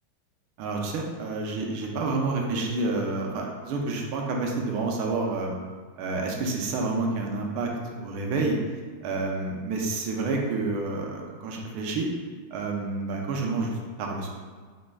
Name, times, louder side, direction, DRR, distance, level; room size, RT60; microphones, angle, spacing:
voice 1, 0.6-5.5 6.0-7.7 8.0-8.6 9.0-12.1 12.5-14.3, right 3 dB, 85° right, 0 dB, 1.5 m, -29 dB
5.1 x 4.0 x 2.3 m, 1.5 s
omnidirectional pair, 2.3 m